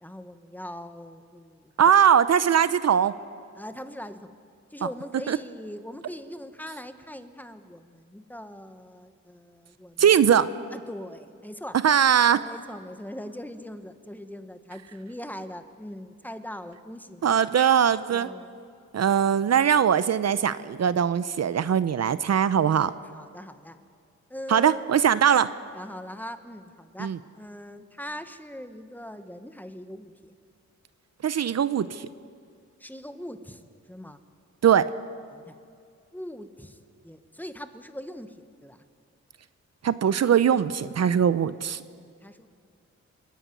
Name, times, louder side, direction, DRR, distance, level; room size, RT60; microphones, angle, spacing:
voice 1, 0.0-1.9 3.6-4.3 4.7-10.1 10.7-11.8 12.3-17.3 18.1-18.6 23.1-23.8 24.3-24.9 25.7-30.3 32.8-34.2 35.3-35.6 36.1-36.8 37.0-38.8 42.0-42.5, equal, 5° left, 10 dB, 1.3 m, -41 dB
voice 2, 1.8-3.1 5.3-5.4 10.0-10.5 11.8-12.4 17.2-18.3 18.9-22.9 24.5-25.5 27.0-27.2 31.2-32.1 34.6-34.9 39.8-41.8, right 8 dB, 60° right, 15 dB, 0.7 m, -21 dB
28.5 x 10.0 x 9.3 m, 2.3 s
cardioid pair, 75°, 29 cm